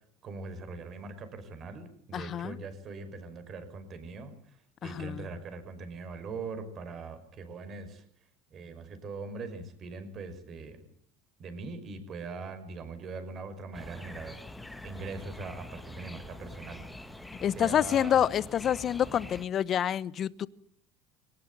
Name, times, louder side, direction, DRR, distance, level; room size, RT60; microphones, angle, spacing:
voice 1, 0.2-4.3 4.8-8.0 8.5-10.8 11.4-14.4 14.8-16.9 17.5-18.2, right 4 dB, 40° right, 10 dB, 5.8 m, -41 dB
voice 2, 2.1-2.6 4.8-5.3 17.4-20.5, left 9 dB, 40° left, 19 dB, 1.0 m, -28 dB
Summer Dawn Birds Phoenix Arizona, 13.7-19.5, left 2 dB, 5° left, 2.0 m, -45 dB
22.0 x 19.0 x 9.3 m, 0.64 s
supercardioid pair, 110°, 0 cm